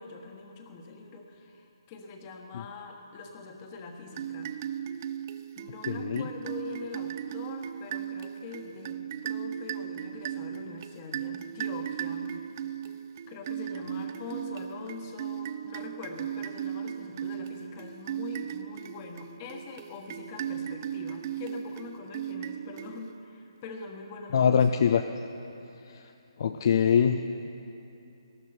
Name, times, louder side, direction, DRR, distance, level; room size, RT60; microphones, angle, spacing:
voice 1, 0.0-4.5 5.6-12.3 13.3-24.7, left 4 dB, 25° left, 3 dB, 1.4 m, -43 dB
sound 1, 4.1-23.3, right 10 dB, 30° right, 0.4 m, -37 dB
voice 2, 5.9-6.2 24.3-25.0 26.4-27.2, left 7 dB, 50° left, 7 dB, 0.5 m, -23 dB
19.0 x 13.5 x 4.4 m, 2.9 s
hypercardioid pair, 160°, 3 cm